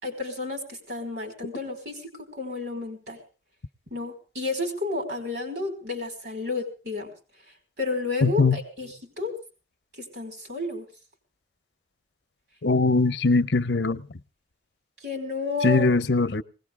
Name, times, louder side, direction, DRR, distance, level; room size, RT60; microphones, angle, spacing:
voice 1, 0.0-3.2 3.9-7.1 7.8-9.4 10.0-10.9 15.0-15.9, left 3 dB, 65° right, 5.2 m, -31 dB
voice 2, 8.2-8.6 12.6-14.0 15.6-16.4, left 3 dB, 75° left, 0.7 m, -21 dB
20.0 x 18.5 x 3.6 m
head